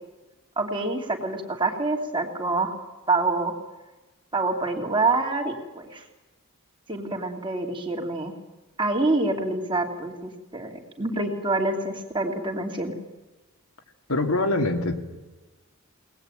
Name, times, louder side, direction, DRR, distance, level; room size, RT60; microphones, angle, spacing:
voice 1, 0.6-2.7 3.1-3.6 4.3-6.0 6.9-8.3 8.8-12.9, right 3 dB, 25° right, 3 dB, 2.9 m, -26 dB
voice 2, 14.1-15.0, left 2 dB, 80° left, 5 dB, 2.5 m, -23 dB
23.0 x 19.0 x 9.2 m, 1.2 s
head